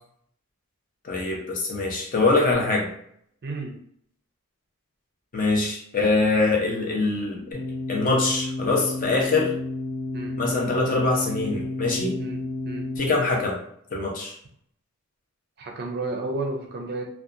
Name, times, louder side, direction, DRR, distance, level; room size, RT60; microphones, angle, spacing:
voice 1, 1.0-2.9 5.3-7.6 7.9-9.5 10.4-12.1 13.0-13.6 13.9-14.3, left 3 dB, 40° left, -1 dB, 0.6 m, -23 dB
voice 2, 3.4-3.7 10.1-10.3 12.2-12.4 12.6-12.9 15.6-17.0, right 2 dB, 45° right, 2 dB, 0.4 m, -31 dB
sound 1, 7.5-13.0, left 2 dB, 60° left, 1.1 m, -31 dB
2.7 x 2.2 x 2.4 m, 0.67 s
head